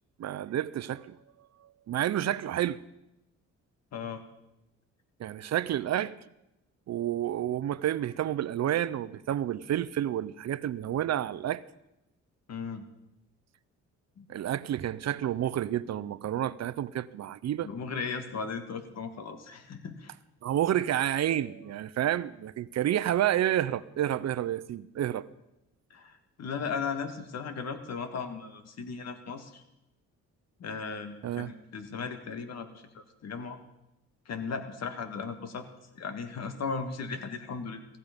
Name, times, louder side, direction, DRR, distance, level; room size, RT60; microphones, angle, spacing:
voice 1, 0.2-1.2 1.9-2.8 5.2-6.2 6.9-11.6 14.3-17.7 20.4-25.3 31.2-31.5, right 11 dB, 60° right, 0.8 m, -30 dB
voice 2, 3.9-4.2 12.5-12.9 14.2-14.3 17.6-20.1 25.9-29.6 30.6-33.6 34.3-35.7 36.0-37.9, left 5 dB, 60° left, 1.8 m, -37 dB
18.5 x 15.0 x 5.3 m
cardioid pair, 90°, 30 cm